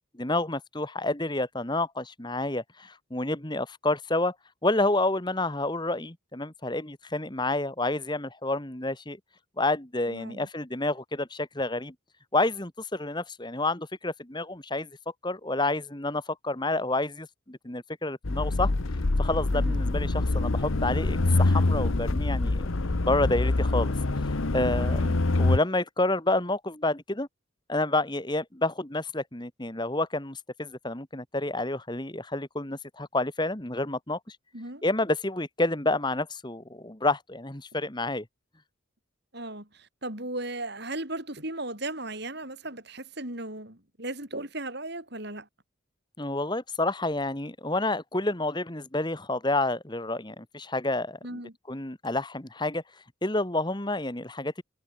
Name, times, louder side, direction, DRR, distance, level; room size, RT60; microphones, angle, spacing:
voice 1, 0.2-4.3 4.6-9.2 9.6-11.9 12.3-14.9 15.2-18.7 19.2-23.9 24.2-25.0 25.4-27.3 27.7-34.4 34.8-38.2 46.2-51.2 51.7-52.8 53.2-54.6, left 2 dB, 20° left, 1.7 m, -29 dB
voice 2, 10.1-10.5 19.5-19.8 24.8-25.2 34.5-34.8 39.3-45.5 51.2-51.5, right 2 dB, 50° right, 6.5 m, -36 dB
sound 1, 18.2-25.6, left 2 dB, 75° left, 1.1 m, -25 dB
head